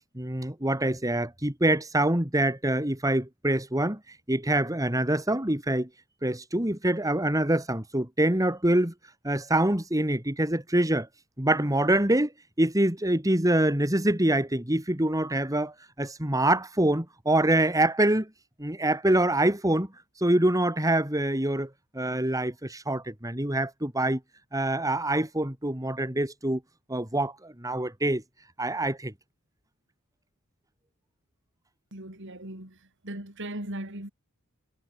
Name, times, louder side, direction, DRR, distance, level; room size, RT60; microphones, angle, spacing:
voice 1, 0.1-4.0 4.3-5.9 6.2-8.9 9.2-11.1 11.4-12.3 12.6-18.3 18.6-19.9 20.2-21.7 21.9-24.2 24.5-26.6 26.9-28.2 28.6-29.1, right 1 dB, 15° right, 3.1 m, -25 dB
voice 2, 31.9-32.8 33.0-34.1, right 1 dB, 60° right, 5.2 m, -38 dB
head